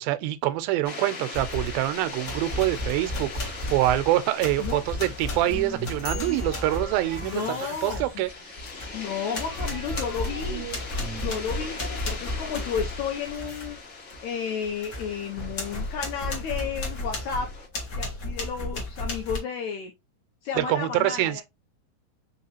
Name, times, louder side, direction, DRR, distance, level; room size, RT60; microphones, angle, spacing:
voice 1, 0.0-8.3 20.6-21.4, right 15 dB, 90° right, 2.3 m, -25 dB
sound 1, 0.8-17.7, left 3 dB, 40° left, 1.2 m, -41 dB
sound 2, 1.3-1.8 2.2-9.0 9.3-13.7 14.1-14.2 14.6-19.4, left 2 dB, 60° left, 0.9 m, -34 dB
sound 3, 5.4-11.7, right 4 dB, 50° right, 1.1 m, -42 dB
voice 2, 7.2-8.2 8.9-10.7 11.2-17.5 17.9-19.9 20.4-21.4, left 6 dB, 80° left, 1.7 m, -32 dB
5.5 x 2.9 x 2.9 m
omnidirectional pair, 4.1 m